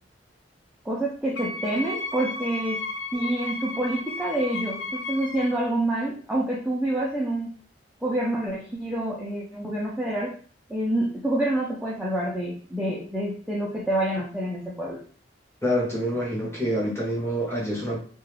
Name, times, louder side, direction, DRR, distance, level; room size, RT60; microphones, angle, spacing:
voice 1, 0.8-2.8 3.1-7.5 8.0-10.3 10.7-15.0, right 1 dB, 5° right, -6 dB, 0.3 m, -27 dB
Wind instrument woodwind instrument, 1.4-5.6, left 2 dB, 75° left, 0.4 m, -34 dB
voice 2, 15.6-18.0, equal, 15° left, -4 dB, 0.8 m, -26 dB
2.3 x 2.1 x 3.1 m, 0.43 s
head